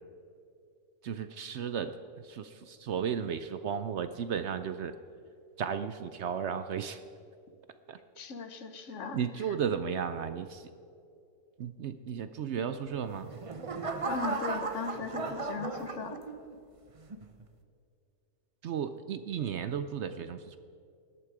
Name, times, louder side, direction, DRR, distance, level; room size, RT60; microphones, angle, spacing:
voice 1, 1.0-4.9 5.6-7.0 7.9-8.0 9.1-10.7 11.6-13.3 18.6-20.6, right 7 dB, 65° right, 11 dB, 0.8 m, -34 dB
voice 2, 8.2-9.2 14.1-16.2, left 4 dB, 60° left, 8 dB, 1.3 m, -37 dB
sound 1, 13.0-16.6 17.1-17.4, right 3 dB, 35° right, 0.6 m, -36 dB
18.0 x 12.0 x 4.8 m, 2.5 s
omnidirectional pair, 1.5 m